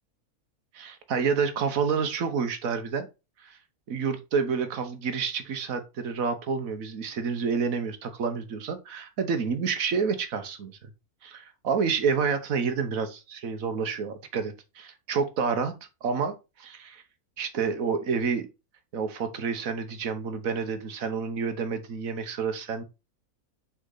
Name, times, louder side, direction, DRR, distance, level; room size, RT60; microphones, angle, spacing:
voice 1, 0.7-3.1 3.4-3.6 3.9-10.7 11.2-15.7 16.0-17.0 17.4-18.5 18.9-22.8, right 5 dB, 65° right, 1.4 m, -29 dB
6.5 x 4.3 x 3.9 m
omnidirectional pair, 1.6 m